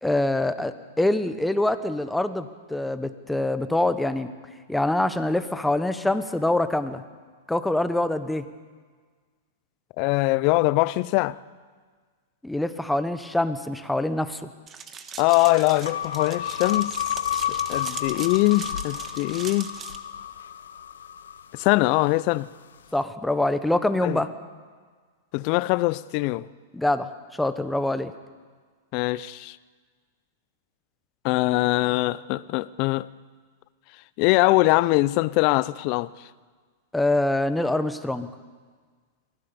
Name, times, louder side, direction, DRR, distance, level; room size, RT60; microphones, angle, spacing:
voice 1, 0.0-4.3 4.7-7.0 7.5-8.4 12.4-14.5 22.9-24.3 26.7-27.1 27.4-28.1 36.9-38.3, left 1 dB, 5° left, 1.1 m, -25 dB
voice 2, 10.0-11.4 15.2-16.9 17.5-19.7 21.5-22.5 24.0-24.2 25.3-26.5 28.9-29.6 31.2-33.1 34.2-36.1, left 20 dB, 50° left, 0.6 m, -22 dB
sound 1, 14.7-20.0, right 6 dB, 25° right, 1.4 m, -40 dB
sound 2, 15.8-22.2, left 9 dB, 85° left, 0.7 m, -31 dB
23.5 x 16.0 x 7.1 m
hypercardioid pair, 125°, 0 cm